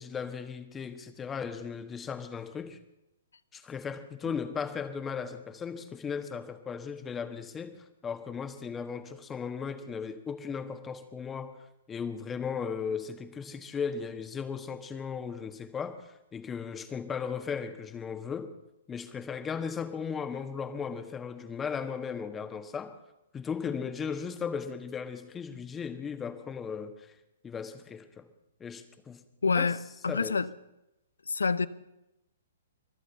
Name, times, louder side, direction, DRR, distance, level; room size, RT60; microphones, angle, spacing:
voice 1, 0.0-2.8 3.5-11.6 11.9-18.5 18.9-23.0 23.3-27.1 27.4-28.3 28.6-29.2 29.5-29.7 30.1-30.4, left 6 dB, 15° left, 10 dB, 1.3 m, -36 dB
voice 2, 29.4-29.8 30.0-30.5 31.3-31.7, left 4 dB, 90° left, 17 dB, 0.7 m, -26 dB
24.0 x 8.3 x 7.0 m, 0.89 s
hypercardioid pair, 130°, 0 cm